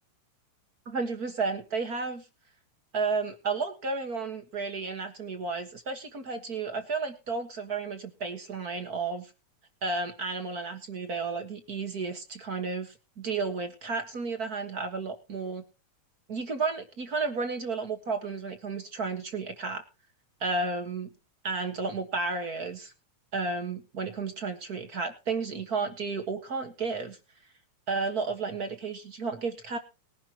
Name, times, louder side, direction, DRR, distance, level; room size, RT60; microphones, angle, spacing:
voice 1, 0.8-2.2 2.9-9.3 9.8-15.6 16.3-19.8 20.4-21.1 21.4-22.9 23.3-27.2 27.9-29.8, right 4 dB, 40° right, 7 dB, 1.6 m, -32 dB
20.5 x 10.5 x 2.9 m, 0.31 s
omnidirectional pair, 3.4 m